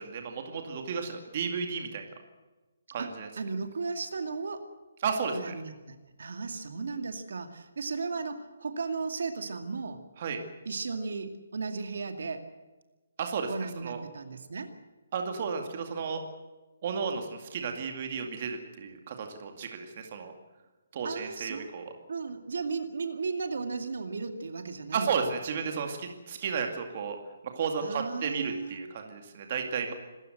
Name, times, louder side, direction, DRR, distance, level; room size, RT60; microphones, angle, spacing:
voice 1, 0.0-2.1 2.9-3.3 5.0-5.5 10.2-10.4 13.2-13.5 13.8-14.0 15.1-16.2 16.8-20.3 20.9-21.9 24.9-27.2 27.4-29.9, right 6 dB, 30° right, 4 dB, 2.2 m, -33 dB
voice 2, 3.4-4.7 5.3-10.0 10.7-12.4 13.5-14.7 21.0-21.7 22.1-25.3 27.8-28.8, right 4 dB, 60° right, 6 dB, 2.3 m, -35 dB
26.0 x 14.5 x 8.0 m, 1.2 s
hypercardioid pair, 180°, 0 cm